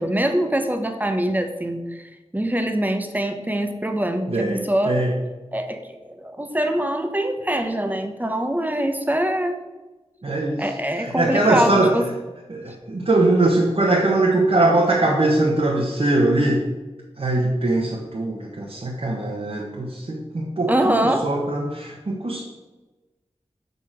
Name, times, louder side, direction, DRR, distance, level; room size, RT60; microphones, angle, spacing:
voice 1, 0.0-5.0 5.5-5.8 6.1-9.6 10.6-12.0 20.7-21.3, right 1 dB, 15° right, 6 dB, 1.0 m, -23 dB
voice 2, 4.3-5.1 10.2-11.9 12.5-16.6 17.2-22.4, right 2 dB, 60° right, -2 dB, 1.3 m, -21 dB
6.7 x 5.3 x 6.1 m, 1.1 s
wide cardioid pair, 65°, 12 cm